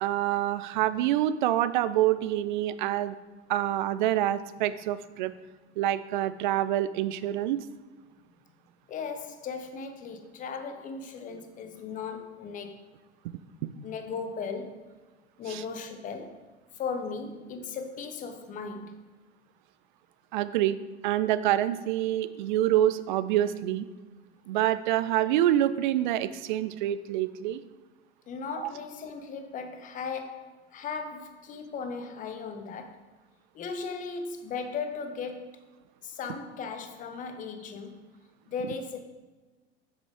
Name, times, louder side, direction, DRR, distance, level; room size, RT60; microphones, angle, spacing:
voice 1, 0.0-3.1 3.5-5.3 5.8-7.6 15.5-15.6 20.3-20.8 21.0-23.9 24.5-27.6 28.6-28.7, right 13 dB, 45° right, 0.4 m, -26 dB
voice 2, 8.9-12.9 13.8-14.9 15.4-16.4 16.7-19.0 28.3-33.0 33.5-35.6 36.0-38.1 38.5-39.0, left 5 dB, 25° left, 0.8 m, -37 dB
7.2 x 6.5 x 3.5 m
figure-of-eight pair, 85°, 34 cm